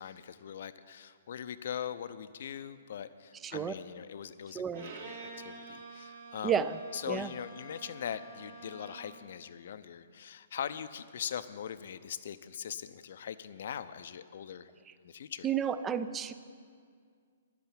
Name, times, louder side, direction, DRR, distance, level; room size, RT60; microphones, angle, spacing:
voice 1, 0.0-6.6 6.9-14.7 15.0-15.5, left 8 dB, 55° left, 13 dB, 0.6 m, -41 dB
voice 2, 3.4-3.7 4.5-4.9 6.4-6.8 7.1-7.3 15.4-16.3, right 7 dB, 15° right, 12 dB, 0.5 m, -31 dB
Bowed string instrument, 4.7-9.2, right 3 dB, 60° right, 2.2 m, -48 dB
11.0 x 8.2 x 9.0 m, 2.1 s
figure-of-eight pair, 120°, 0 cm